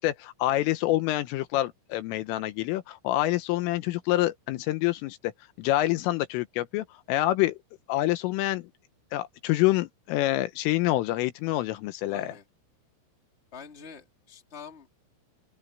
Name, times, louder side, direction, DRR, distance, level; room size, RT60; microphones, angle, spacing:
voice 1, 0.0-5.3 5.6-7.6 7.9-8.7 9.1-12.3, left 16 dB, 80° left, 3.5 m, -27 dB
voice 2, 12.1-12.4 13.5-14.9, left 6 dB, 15° left, 2.4 m, -45 dB
open air
omnidirectional pair, 5.9 m